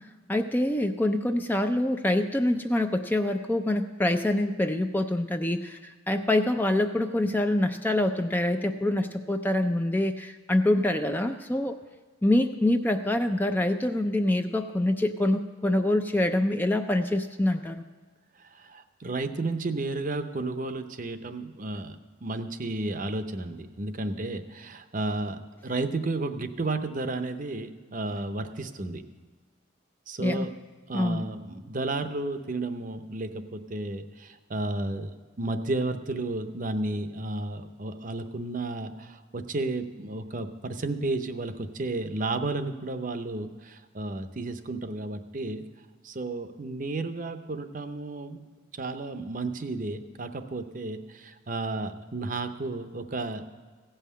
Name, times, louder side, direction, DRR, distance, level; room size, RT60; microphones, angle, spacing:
voice 1, 0.3-11.8 12.2-17.8 30.2-30.5 30.9-31.3, left 1 dB, 10° left, 6 dB, 0.3 m, -25 dB
voice 2, 18.4-22.0 22.2-29.0 30.1-30.5 30.9-45.6 46.0-48.4 48.7-53.4, right 2 dB, 40° right, 9 dB, 0.6 m, -32 dB
16.0 x 5.6 x 8.3 m, 1.5 s
head